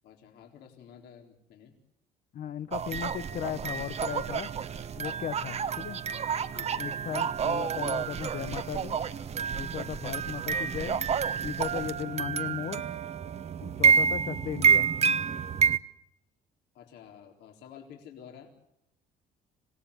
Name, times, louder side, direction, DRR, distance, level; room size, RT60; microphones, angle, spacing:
voice 1, 0.0-1.7 6.5-6.9 9.7-9.9 16.7-18.5, left 8 dB, 80° left, 3 dB, 4.1 m, -51 dB
voice 2, 2.3-4.5 5.0-6.0 6.8-9.0 9.5-11.0 11.4-12.9 13.6-14.9, left 10 dB, 50° left, 14 dB, 0.8 m, -36 dB
sound 1, 2.7-15.8, right 7 dB, 40° right, 1.0 m, -28 dB
26.5 x 18.0 x 8.3 m, 0.78 s
cardioid pair, 110°, 17 cm